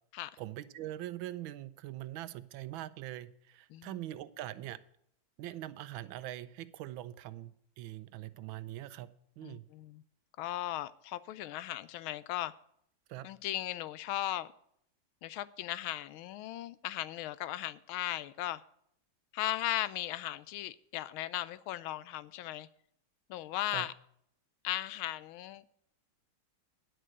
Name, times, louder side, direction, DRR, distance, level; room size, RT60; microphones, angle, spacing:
voice 1, 0.4-4.8 5.4-9.1 9.4-9.6 13.1-13.2 23.7-23.9, right 14 dB, 75° right, 1.4 m, -42 dB
voice 2, 9.4-10.0 10.4-12.5 13.2-14.5 15.2-18.6 19.3-22.7 23.3-23.9 24.6-25.7, left 14 dB, 80° left, 1.4 m, -37 dB
10.0 x 6.4 x 7.8 m
omnidirectional pair, 2.3 m